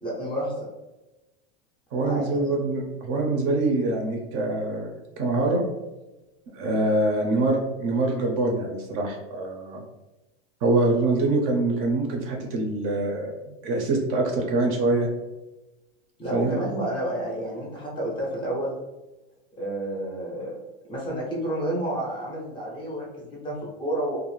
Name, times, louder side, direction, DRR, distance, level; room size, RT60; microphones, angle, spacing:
voice 1, 0.0-0.7 2.0-2.4 16.2-18.7 19.6-20.6 20.9-24.2, right 1 dB, 15° left, -4 dB, 0.5 m, -30 dB
voice 2, 1.9-4.9 5.2-5.6 6.5-9.8 10.6-13.3 13.6-15.1 16.3-16.6, right 2 dB, 40° right, 1 dB, 0.5 m, -24 dB
2.4 x 2.0 x 3.0 m, 1.1 s
supercardioid pair, 145°, 33 cm